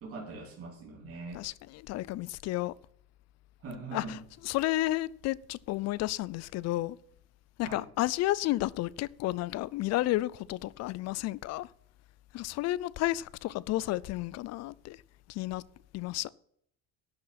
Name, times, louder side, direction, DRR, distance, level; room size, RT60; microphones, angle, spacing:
voice 1, 0.0-1.4 3.6-4.2 7.6-7.9, right 3 dB, 50° right, 3.2 m, -42 dB
voice 2, 1.3-2.7 3.9-4.2 4.4-7.0 7.6-11.7 12.3-15.0 15.3-15.6 15.9-16.3, left 16 dB, 60° left, 0.5 m, -32 dB
12.0 x 6.4 x 5.9 m
cardioid pair, 145°, 30 cm